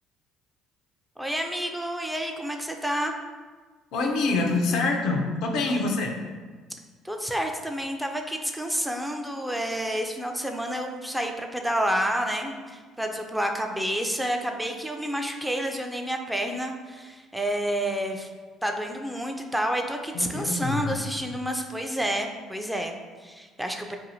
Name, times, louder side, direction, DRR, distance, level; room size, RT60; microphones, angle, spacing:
voice 1, 1.2-3.1 7.0-18.3 18.6-24.0, equal, 5° right, 3 dB, 0.3 m, -29 dB
voice 2, 3.9-6.2 20.1-21.0, left 3 dB, 70° left, 2 dB, 0.4 m, -26 dB
2.6 x 2.6 x 2.7 m, 1.4 s
hypercardioid pair, 65°, 0 cm